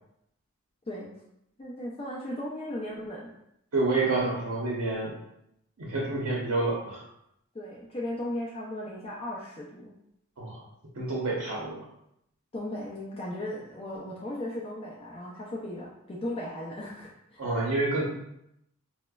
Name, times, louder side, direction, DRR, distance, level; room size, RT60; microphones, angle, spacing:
voice 1, 1.6-3.3 7.5-9.9 12.5-17.4, left 1 dB, 25° left, -4 dB, 0.4 m, -36 dB
voice 2, 3.7-5.2 5.8-7.0 10.4-10.6 10.9-11.9 17.4-18.1, right 2 dB, 70° right, -4 dB, 0.7 m, -28 dB
4.8 x 2.1 x 2.2 m, 0.78 s
head